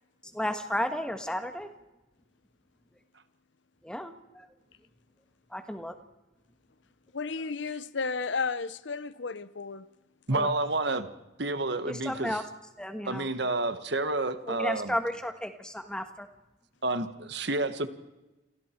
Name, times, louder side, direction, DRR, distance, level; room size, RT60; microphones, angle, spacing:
voice 1, 0.3-1.7 3.8-4.5 5.5-5.9 10.3-10.5 11.9-12.4 12.8-13.3 14.5-16.3, left 1 dB, 5° left, 1.4 m, -33 dB
voice 2, 7.1-9.9, left 4 dB, 65° left, 0.8 m, -33 dB
voice 3, 10.3-11.1 11.4-12.4 13.0-14.9 16.8-17.9, right 2 dB, 60° right, 1.4 m, -29 dB
28.0 x 27.5 x 4.5 m
head